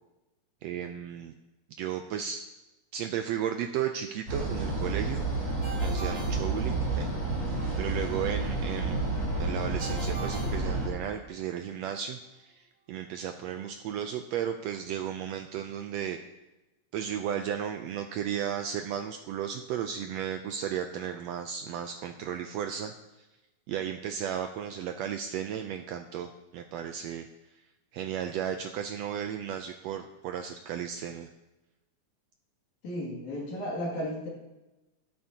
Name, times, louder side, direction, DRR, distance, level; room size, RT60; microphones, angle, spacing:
voice 1, 0.6-1.3 1.8-2.4 2.9-5.5 5.8-7.1 7.8-16.2 16.9-22.9 23.2-23.3 23.7-27.3 27.9-31.3, right 9 dB, 80° right, 6 dB, 1.5 m, -34 dB
sound 1, 4.3-10.9, right 2 dB, 30° right, 3.6 m, -30 dB
Ringtone, 5.6-7.3 9.8-11.5, right 3 dB, 10° right, 4.1 m, -43 dB
voice 2, 32.8-34.3, equal, 75° left, -3 dB, 3.6 m, -34 dB
12.5 x 11.0 x 2.8 m, 1.0 s
omnidirectional pair, 3.4 m